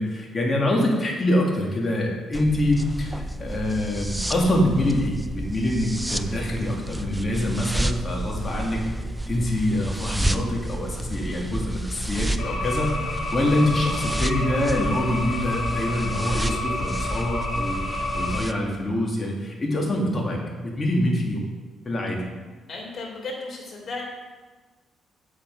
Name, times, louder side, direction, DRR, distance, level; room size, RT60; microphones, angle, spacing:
voice 1, 0.0-8.8 9.3-12.9 13.3-21.4 21.8-22.2, left 1 dB, 30° left, -1 dB, 2.5 m, -25 dB
sound 1, 2.3-18.5, right 1 dB, 5° right, 0.5 m, -30 dB
sound 2, 12.4-18.4, left 2 dB, 80° left, 2.6 m, -30 dB
voice 2, 22.7-24.0, left 3 dB, 50° left, -2 dB, 3.4 m, -34 dB
8.3 x 7.7 x 4.9 m, 1.3 s
cardioid pair, 90°, 0 cm